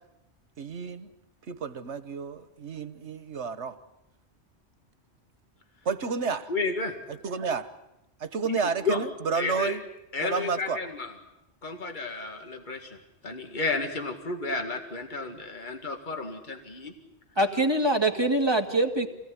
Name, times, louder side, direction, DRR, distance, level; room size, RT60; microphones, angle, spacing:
voice 1, 0.6-1.1 1.5-3.7 5.8-6.5 7.1-7.7 8.2-9.8 10.2-10.8, right 5 dB, 90° right, 12 dB, 1.6 m, -31 dB
voice 2, 6.5-6.9 8.5-9.1 9.3-9.8 10.1-11.1 11.6-13.0 13.2-16.9, left 3 dB, 45° left, 4 dB, 2.3 m, -32 dB
voice 3, 17.4-19.1, right 1 dB, 20° right, 3 dB, 2.2 m, -24 dB
27.0 x 18.5 x 9.7 m, 0.90 s
omnidirectional pair, 1.1 m